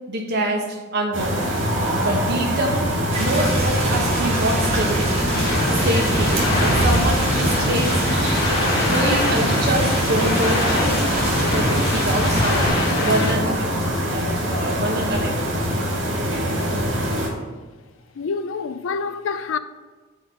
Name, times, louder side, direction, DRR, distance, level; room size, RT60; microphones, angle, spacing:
voice 1, 0.1-1.4 2.0-2.9 3.2-5.3 5.8-8.0 8.9-13.7 14.1-15.4, right 1 dB, 55° right, 1.4 m, -25 dB
sound 1, 1.1-17.3, equal, 85° right, 2.6 m, -24 dB
sound 2, 3.1-12.7, right 1 dB, 35° right, 2.1 m, -26 dB
sound 3, 5.3-13.3, left 1 dB, 55° left, 1.8 m, -24 dB
voice 2, 18.1-19.6, left 5 dB, 75° left, 0.4 m, -27 dB
6.3 x 5.0 x 6.3 m
head